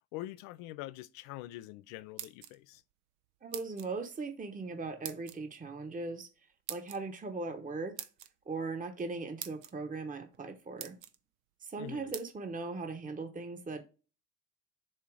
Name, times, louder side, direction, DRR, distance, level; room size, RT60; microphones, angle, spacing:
voice 1, 0.1-2.8 11.8-12.1, left 16 dB, 70° left, 0.5 m, -44 dB
sound 1, 2.0-2.8 3.5-3.9 5.0-5.4 6.7-7.0 8.0-8.3 9.0-9.1 9.4-9.7 10.3-10.4 10.8-11.2 12.1-12.3, right 12 dB, 75° right, 0.8 m, -43 dB
voice 2, 3.4-6.3 6.7-8.0 8.5-11.0 11.6-13.8, right 3 dB, 20° right, 1.1 m, -39 dB
7.5 x 2.8 x 4.8 m
hypercardioid pair, 60°, 41 cm